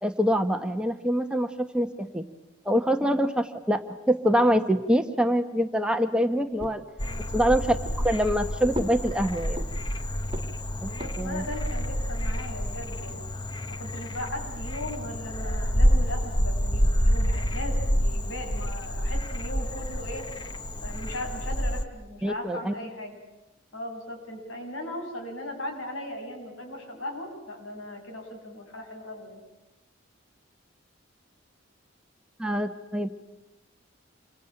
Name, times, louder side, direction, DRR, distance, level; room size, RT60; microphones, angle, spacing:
voice 1, 0.0-2.3 2.6-6.8 7.3-7.8 8.0-9.6 10.8-11.5 22.2-22.7 32.4-33.1, equal, 5° right, 6 dB, 1.0 m, -25 dB
sound 1, 6.6-7.4 7.8-8.4 8.7-10.0 10.3-11.4, equal, 25° right, 1.8 m, -37 dB
voice 2, 7.0-7.5 10.8-13.3 13.8-20.2 20.8-23.1 23.7-29.4, left 1 dB, 80° left, 2 dB, 8.0 m, -38 dB
Frog, 7.0-21.8, equal, 20° left, 1.0 m, -28 dB
28.0 x 23.5 x 9.0 m, 1.0 s
head